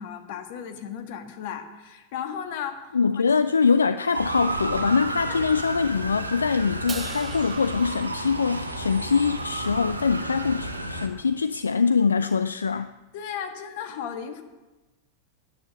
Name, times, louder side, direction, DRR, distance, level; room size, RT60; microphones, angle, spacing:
voice 1, 0.0-2.9 5.3-5.5 13.1-14.4, left 8 dB, 50° left, 6 dB, 1.5 m, -35 dB
voice 2, 2.9-12.9, left 5 dB, 75° left, 13 dB, 0.3 m, -23 dB
Motor vehicle (road) / Siren, 4.1-11.1, right 1 dB, 85° right, 1.3 m, -32 dB
Crash cymbal, 6.9-9.3, right 6 dB, 20° right, 0.6 m, -42 dB
10.5 x 9.2 x 7.4 m, 1.1 s
figure-of-eight pair, 90°, 0 cm